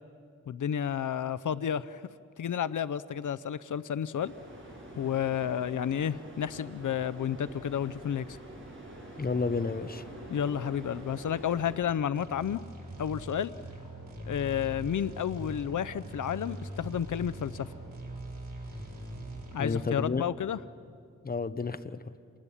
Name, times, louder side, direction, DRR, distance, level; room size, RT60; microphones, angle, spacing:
voice 1, 0.5-2.0 2.4-4.3 5.0-8.4 10.3-12.6 13.0-13.5 14.3-17.7 19.5-20.6, left 9 dB, 75° left, 15 dB, 0.6 m, -31 dB
sound 1, 4.2-11.8, right 1 dB, 40° right, 7.6 m, -46 dB
voice 2, 9.2-10.0 19.6-20.2 21.2-22.0, left 4 dB, 30° left, 12 dB, 0.9 m, -31 dB
sound 2, 12.1-19.8, right 1 dB, 85° right, 7.2 m, -42 dB
27.5 x 20.5 x 10.0 m, 2.3 s
wide cardioid pair, 120°, 31 cm